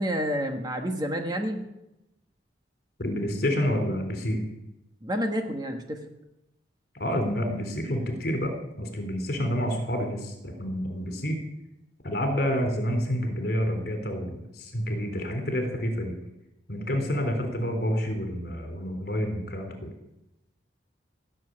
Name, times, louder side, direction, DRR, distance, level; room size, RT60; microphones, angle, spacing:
voice 1, 0.0-1.6 5.0-6.0 12.4-12.5, equal, 20° right, 4 dB, 1.4 m, -29 dB
voice 2, 3.0-4.4 6.9-8.5 8.8-11.4 12.0-16.1 16.7-19.9, equal, 55° left, 4 dB, 3.9 m, -28 dB
17.5 x 7.4 x 9.9 m, 0.90 s
head